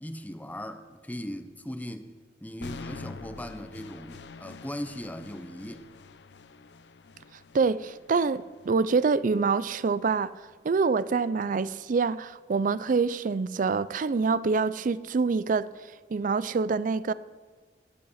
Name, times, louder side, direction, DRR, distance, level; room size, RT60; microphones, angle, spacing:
voice 1, 0.0-2.1 2.4-5.9, equal, 10° left, 0.9 m, -38 dB
sound 1, 2.6-10.6, left 4 dB, 75° left, 0.7 m, -47 dB
voice 2, 7.5-10.3 10.6-15.7 16.1-17.1, right 4 dB, 50° right, 0.4 m, -26 dB
16.0 x 11.5 x 5.7 m
head